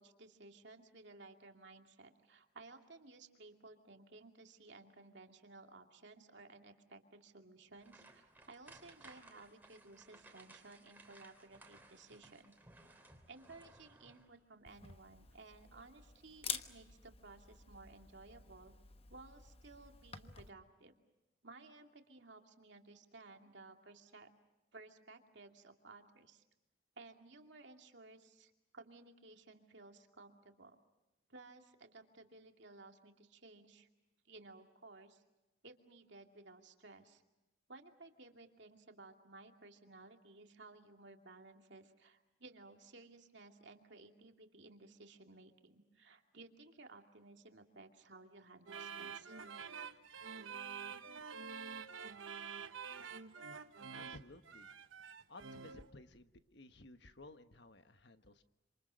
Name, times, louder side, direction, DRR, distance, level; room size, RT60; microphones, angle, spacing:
voice 1, 0.0-12.6 13.3-18.7 19.1-21.0 21.4-24.3 24.7-26.4 27.0-30.8 31.3-33.9 34.2-35.2 35.6-37.2 37.7-49.4, right 3 dB, 60° right, 4 dB, 2.5 m, -57 dB
sound 1, 7.8-14.4 14.8-15.0 15.4-15.5, right 2 dB, 10° right, 3.1 m, -61 dB
Camera, 14.7-20.5, left 7 dB, 30° left, 1.1 m, -49 dB
sound 2, 48.7-55.9, right 6 dB, 80° right, 1.1 m, -47 dB
voice 2, 53.9-54.7 55.3-58.4, left 2 dB, 55° left, 9 dB, 1.4 m, -56 dB
27.5 x 27.0 x 6.4 m, 1.0 s
head